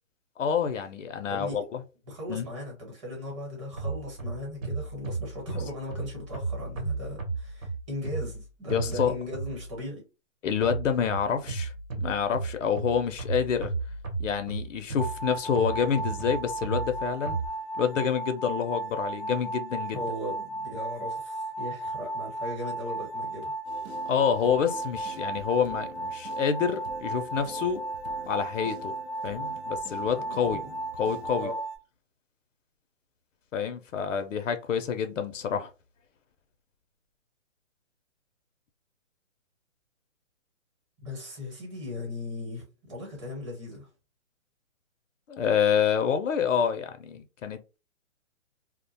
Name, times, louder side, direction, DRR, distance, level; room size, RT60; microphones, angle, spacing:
voice 1, 0.4-1.8 2.3-2.5 8.7-9.2 10.4-11.7 12.0-13.7 14.2-17.4 17.8-20.0 24.1-27.8 28.3-28.9 29.2-30.6 30.9-31.5 33.5-35.7 45.3-47.8, left 7 dB, 65° left, 0.5 m, -28 dB
voice 2, 1.3-1.6 2.1-10.0 19.9-23.5 30.2-30.8 31.4-31.5 41.0-43.9, left 1 dB, 25° right, 1.0 m, -38 dB
sound 1, 3.8-9.8 10.6-17.5, right 3 dB, 80° right, 1.0 m, -34 dB
sound 2, 15.0-31.8, right 2 dB, ahead, 0.5 m, -35 dB
sound 3, 23.6-31.4, right 2 dB, 55° right, 0.5 m, -45 dB
2.4 x 2.1 x 2.7 m
hypercardioid pair, 160°, 40 cm